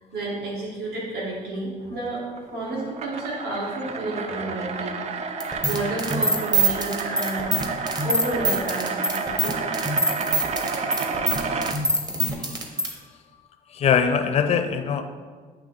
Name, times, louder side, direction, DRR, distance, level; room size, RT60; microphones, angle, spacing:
voice 1, 0.1-2.2 2.5-5.0 5.3-7.5 8.0-9.3, right 1 dB, 65° right, -5 dB, 1.7 m, -30 dB
sound 1, 2.3-11.8, right 4 dB, 40° right, 0.4 m, -30 dB
sound 2, 5.4-12.9, right 2 dB, 25° right, 0.9 m, -24 dB
voice 2, 13.7-15.0, left 7 dB, 40° left, 7 dB, 0.5 m, -21 dB
8.5 x 2.9 x 4.0 m, 1.5 s
cardioid pair, 110°, 17 cm